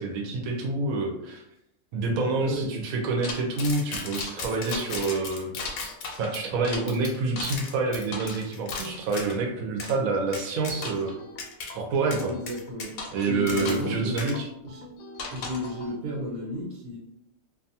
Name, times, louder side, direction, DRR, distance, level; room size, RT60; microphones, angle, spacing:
voice 1, 0.0-1.4 1.9-5.5 6.2-11.2 11.7-12.3 13.1-14.5, right 3 dB, 90° right, 1 dB, 1.0 m, -27 dB
voice 2, 2.4-2.8 12.2-12.9 13.2-14.4 14.6-14.8 15.3-17.0, equal, 60° right, -2 dB, 0.8 m, -33 dB
sound 1, 3.2-9.4 9.8-9.9 10.3-11.1 11.4-11.7 12.1-13.9 14.2-14.3 15.2-15.7, left 4 dB, 85° left, 1.0 m, -35 dB
sound 2, 10.7-16.0, left 1 dB, 65° left, 0.6 m, -47 dB
2.5 x 2.4 x 2.7 m, 0.78 s
omnidirectional pair, 1.4 m